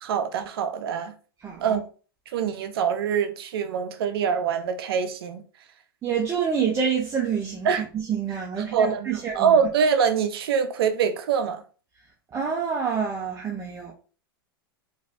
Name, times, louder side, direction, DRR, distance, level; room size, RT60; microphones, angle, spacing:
voice 1, 0.0-1.1 1.6-1.9 2.3-5.4 7.6-7.8 8.7-11.6, right 7 dB, 75° right, 0.5 m, -24 dB
voice 2, 1.4-1.8 6.0-9.6 12.3-13.9, right 6 dB, 20° right, 0.6 m, -27 dB
3.2 x 2.6 x 2.5 m
hypercardioid pair, 110°, 13 cm